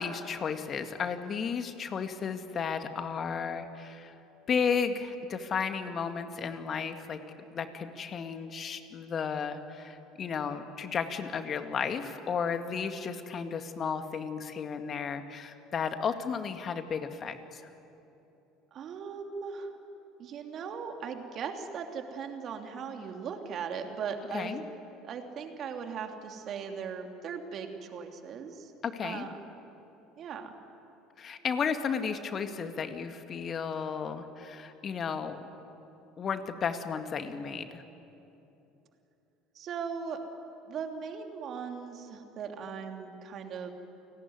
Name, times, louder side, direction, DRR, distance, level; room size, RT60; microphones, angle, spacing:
voice 1, 0.0-4.1 4.5-7.2 7.5-17.6 24.3-24.6 28.8-29.3 31.2-35.4 36.2-37.8, left 6 dB, 40° left, 8 dB, 2.1 m, -33 dB
voice 2, 18.7-19.7 20.2-24.6 25.0-28.7 29.0-29.4 30.2-30.5 39.5-40.2 40.7-43.7, right 6 dB, 50° right, 4 dB, 3.0 m, -38 dB
29.5 x 18.5 x 9.7 m, 3.0 s
hypercardioid pair, 65°, 0 cm